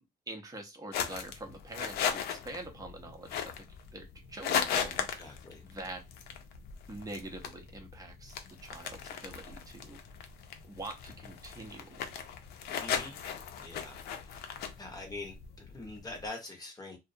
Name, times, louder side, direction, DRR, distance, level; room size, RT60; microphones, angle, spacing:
voice 1, 0.0-3.7 3.9-6.1 6.9-10.0 10.6-12.2, right 2 dB, 20° right, 0.7 m, -45 dB
sound 1, 0.9-16.3, left 8 dB, 70° left, 0.4 m, -38 dB
voice 2, 5.2-5.6 12.8-13.2 13.6-14.0 14.2-14.5 14.8-17.0, left 2 dB, 20° left, 0.8 m, -44 dB
2.3 x 2.0 x 2.6 m
cardioid pair, 110°, 17 cm